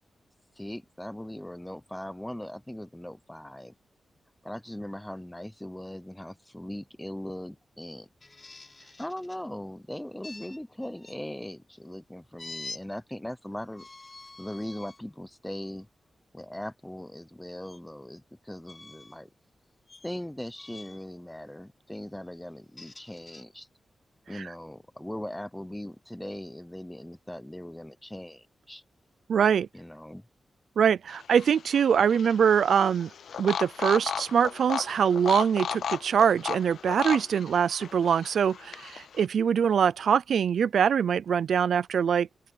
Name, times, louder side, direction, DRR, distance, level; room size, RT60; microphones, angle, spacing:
voice 1, 0.6-3.7 4.4-8.1 9.0-13.9 14.4-15.9 16.3-19.3 20.0-23.7 24.3-28.8 29.7-30.2, left 1 dB, 5° left, 0.8 m, -39 dB
sound 1, 8.2-9.4 10.2-11.2 12.4-12.8 13.7-15.0 15.6-15.8 17.6-17.8 18.6-19.2 19.8-20.2 20.6-21.1 22.5-23.4, left 3 dB, 25° left, 6.3 m, -46 dB
voice 2, 29.3-29.7 30.8-33.1 33.4-42.3, right 7 dB, 80° right, 0.5 m, -23 dB
sound 2, 31.1-39.2, left 7 dB, 80° left, 0.4 m, -36 dB
open air
wide cardioid pair, 150°, 0 cm